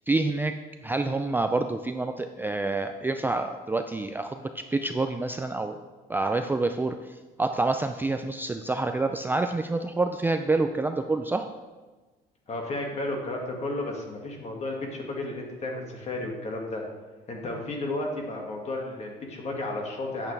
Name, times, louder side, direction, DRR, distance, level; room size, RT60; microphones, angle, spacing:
voice 1, 0.1-0.5 0.8-5.8 6.1-11.5, right 3 dB, 10° right, 6 dB, 0.4 m, -27 dB
voice 2, 12.5-16.8 17.3-20.3, left 2 dB, 40° left, 0 dB, 2.0 m, -33 dB
9.1 x 8.1 x 3.4 m, 1.3 s
cardioid pair, 110°, 17 cm